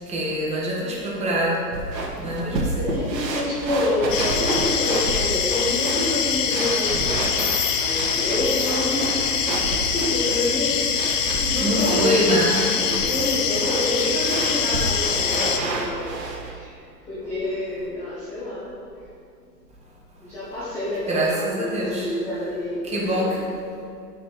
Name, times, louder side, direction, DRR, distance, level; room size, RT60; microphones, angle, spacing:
voice 1, 0.1-1.6 2.2-2.9 11.6-12.6 21.1-22.1 22.8-23.4, equal, 15° right, -4 dB, 1.4 m, -24 dB
sound 1, 1.7-16.5, right 2 dB, 80° right, 1.3 m, -30 dB
voice 2, 2.4-7.5 7.7-9.3 9.9-16.7 17.0-18.7 20.2-23.3, left 1 dB, 5° left, -10 dB, 0.4 m, -28 dB
sound 2, 4.1-15.6, left 7 dB, 50° left, 0.7 m, -24 dB
6.0 x 5.2 x 4.6 m, 2.5 s
hypercardioid pair, 115°, 50 cm